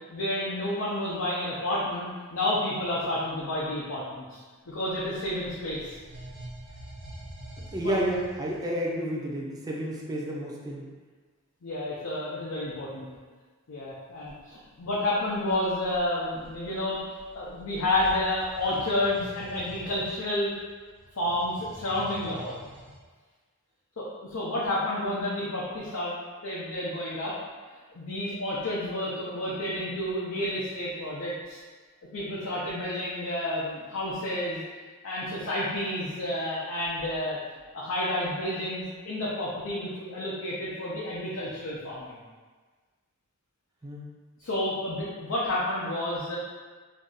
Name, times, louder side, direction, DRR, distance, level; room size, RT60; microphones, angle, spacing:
voice 1, 0.1-5.9 7.8-7.9 11.6-13.1 13.7-17.0 17.3-20.5 21.1-22.6 24.0-26.1 26.4-27.3 27.9-31.6 32.1-34.6 35.0-37.4 37.7-42.2 44.4-46.4, left 1 dB, 65° left, -7 dB, 0.5 m, -30 dB
sound 1, 4.7-8.8 14.2-14.4 15.2-23.0, right 1 dB, 85° right, 1.2 m, -46 dB
voice 2, 7.7-10.9 43.8-44.1, equal, 15° right, -3 dB, 0.5 m, -30 dB
2.6 x 2.3 x 3.9 m, 1.4 s
head